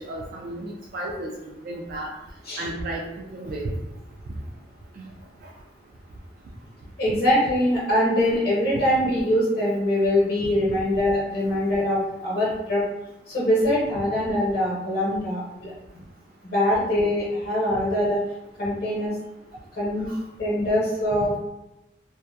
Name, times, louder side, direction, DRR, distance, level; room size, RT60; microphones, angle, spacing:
voice 1, 0.0-1.3 1.6-2.1 2.6-3.7 5.4-5.5 20.1-20.2, right 1 dB, 55° right, -3 dB, 0.3 m, -33 dB
voice 2, 7.0-12.8 13.3-15.7 16.4-18.2 18.6-19.1 19.7-20.1 20.4-21.4, left 1 dB, 60° left, -6 dB, 0.8 m, -23 dB
2.7 x 2.1 x 2.3 m, 0.93 s
head